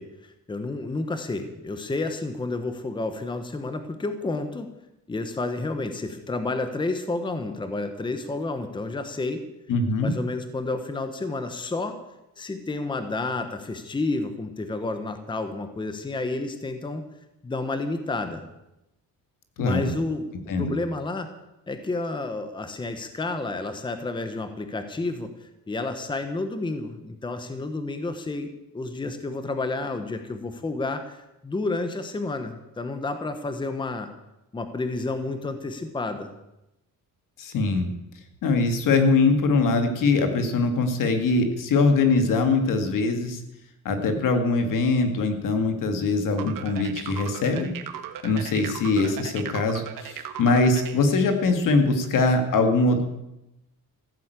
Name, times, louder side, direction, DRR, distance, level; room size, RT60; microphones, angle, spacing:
voice 1, 0.0-4.7 5.1-9.4 10.0-12.0 12.4-17.0 17.4-18.5 19.6-21.3 21.7-34.1 34.5-36.3, left 2 dB, 15° left, 8 dB, 1.0 m, -30 dB
voice 2, 9.7-10.1 19.6-19.9 20.5-20.7 37.4-37.9 38.4-43.4 43.8-47.7 48.2-53.0, left 3 dB, 65° left, 6 dB, 2.3 m, -22 dB
sound 1, 46.4-51.0, right 9 dB, 70° right, 1.5 m, -37 dB
15.0 x 9.3 x 8.1 m, 0.91 s
cardioid pair, 160°, 34 cm